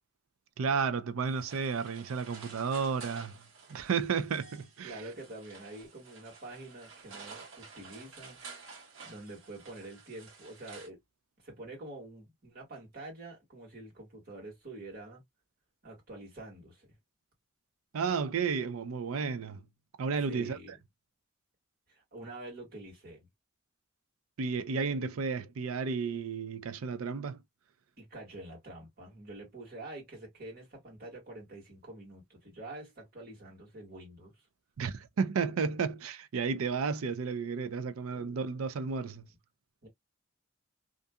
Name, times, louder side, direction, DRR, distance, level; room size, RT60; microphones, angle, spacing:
voice 1, 0.6-3.4 3.7-5.0 17.9-19.6 20.0-20.6 24.4-27.4 34.8-39.3, right 5 dB, 90° right, 0.4 m, -32 dB
sound 1, 1.2-10.9, right 4 dB, 75° right, 1.2 m, -51 dB
voice 2, 4.8-8.4 8.7-11.0 11.4-15.2 15.8-16.9 20.3-20.8 21.9-23.3 28.0-34.4 38.1-38.5 39.8-39.9, right 2 dB, 45° right, 1.7 m, -47 dB
2.6 x 2.5 x 2.3 m
head